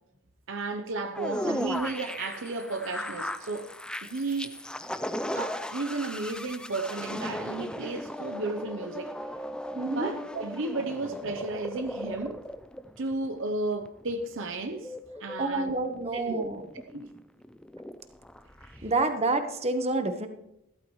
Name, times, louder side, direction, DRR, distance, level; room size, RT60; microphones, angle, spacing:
voice 1, 0.5-3.7 4.0-4.6 5.3-9.2 9.9-12.4 13.0-14.9 15.2-15.7 16.1-16.4 16.9-17.1 18.6-18.9, right 3 dB, 60° right, 0.8 m, -33 dB
sound 1, 1.1-18.9, left 1 dB, 5° left, 0.4 m, -37 dB
voice 2, 9.7-10.1 15.4-16.6 18.8-20.3, right 2 dB, 30° right, 1.2 m, -28 dB
15.0 x 13.0 x 3.1 m
head